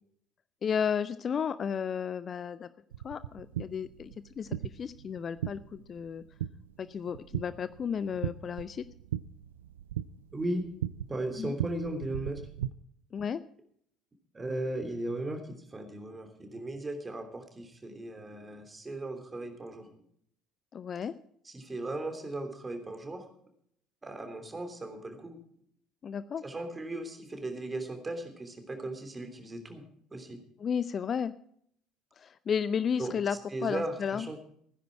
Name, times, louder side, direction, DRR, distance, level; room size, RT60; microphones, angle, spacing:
voice 1, 0.6-2.7 3.0-6.2 6.8-8.8 11.4-11.6 13.1-13.4 20.7-21.1 26.0-26.4 30.6-31.3 32.2-34.3, left 7 dB, 35° left, 15 dB, 0.6 m, -33 dB
sound 1, 2.9-12.7, right 11 dB, 70° right, 0.4 m, -39 dB
voice 2, 10.3-10.6 11.1-12.4 14.3-20.0 21.4-23.3 24.0-25.4 26.4-30.4 33.0-33.1 33.5-34.4, right 2 dB, 20° right, 6 dB, 3.1 m, -37 dB
16.5 x 10.5 x 4.7 m, 0.67 s
figure-of-eight pair, 60°, 0 cm